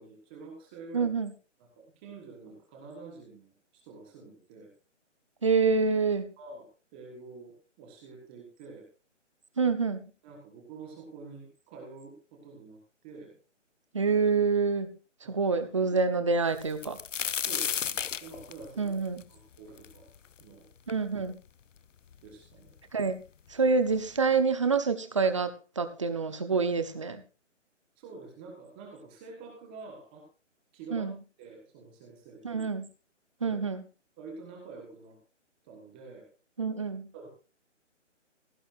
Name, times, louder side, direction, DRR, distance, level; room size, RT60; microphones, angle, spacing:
voice 1, 0.0-1.1 1.6-4.7 6.4-8.9 10.2-13.3 15.2-15.9 17.4-18.9 19.3-20.1 20.4-20.7 22.2-22.8 28.0-30.2 30.7-31.1 31.4-32.6 33.4-33.6 34.2-35.2 35.6-36.3 37.1-37.3, right 4 dB, 10° right, -1 dB, 1.3 m, -47 dB
voice 2, 0.9-1.3 5.4-6.3 9.6-10.1 13.9-15.0 15.3-17.0 18.8-19.2 20.9-21.4 22.9-23.2 23.5-27.2 30.9-31.2 32.4-32.9 33.4-33.8 36.6-37.1, right 4 dB, 25° right, 9 dB, 0.9 m, -27 dB
sound 1, 16.6-20.4 20.9-21.0 21.8-21.9 22.1-22.8 23.7-23.8 24.2-24.4, left 8 dB, 80° left, 0.8 m, -33 dB
17.0 x 11.0 x 2.6 m, 0.33 s
hypercardioid pair, 175°, 37 cm